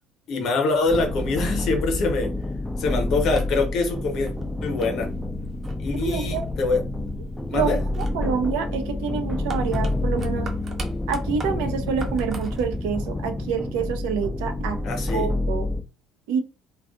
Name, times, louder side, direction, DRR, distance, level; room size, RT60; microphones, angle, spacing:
voice 1, 0.3-2.3 2.8-4.3 4.6-5.1 5.8-6.8 7.5-7.8 14.8-15.3, left 3 dB, 55° left, 4 dB, 0.8 m, -24 dB
sound 1, 0.7-12.8, right 2 dB, 35° right, 0.7 m, -42 dB
sound 2, 0.9-15.8, left 2 dB, 5° left, 0.3 m, -28 dB
voice 2, 6.0-6.5 7.5-10.5 11.1-14.8 15.1-15.7 16.3-16.4, right 6 dB, 65° right, 7 dB, 0.4 m, -27 dB
2.4 x 2.3 x 2.5 m, 0.30 s
figure-of-eight pair, 55°, 0 cm